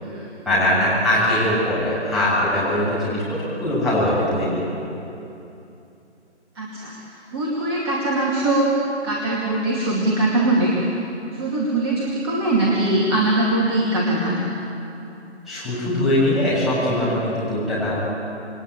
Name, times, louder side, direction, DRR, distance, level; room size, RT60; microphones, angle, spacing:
voice 1, 0.4-3.2 3.6-4.6 15.5-18.0, left 1 dB, ahead, -10 dB, 6.8 m, -21 dB
voice 2, 6.5-8.7 9.0-10.9 11.3-14.4, right 2 dB, 20° right, -3 dB, 2.4 m, -22 dB
28.0 x 21.0 x 8.7 m, 2.8 s
figure-of-eight pair, 150°, 35 cm